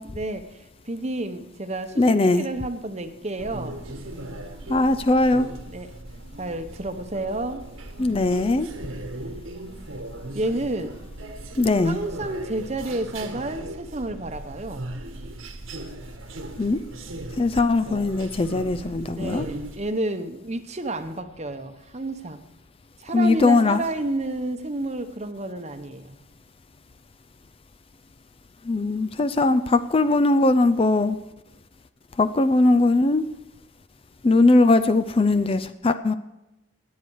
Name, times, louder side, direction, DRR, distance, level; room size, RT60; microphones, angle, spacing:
voice 1, 0.0-3.8 5.7-5.9 6.4-7.7 8.0-8.4 10.3-11.0 11.8-14.8 19.1-22.4 23.0-26.2, right 2 dB, 30° right, 8 dB, 0.9 m, -31 dB
voice 2, 2.0-2.5 4.7-5.5 8.0-8.7 11.6-12.0 16.6-16.8 17.4-19.5 23.1-23.8 28.6-31.2 32.2-33.2 34.2-36.1, left 2 dB, 25° left, 12 dB, 0.4 m, -20 dB
sound 1, 3.4-19.8, right 1 dB, 80° right, 1.5 m, -38 dB
21.0 x 8.4 x 4.7 m, 0.96 s
head